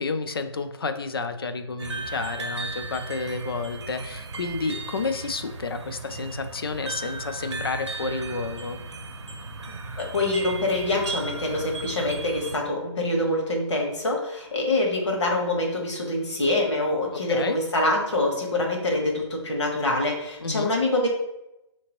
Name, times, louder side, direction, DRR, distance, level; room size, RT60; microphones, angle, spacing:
voice 1, 0.0-8.8 17.1-17.6 20.4-20.7, left 4 dB, 50° left, 8 dB, 0.4 m, -30 dB
sound 1, 1.8-12.6, right 3 dB, 70° right, 0.7 m, -36 dB
voice 2, 10.0-21.1, left 2 dB, 75° left, 0 dB, 1.3 m, -25 dB
4.2 x 2.9 x 3.0 m, 0.90 s
hypercardioid pair, 180°, 15 cm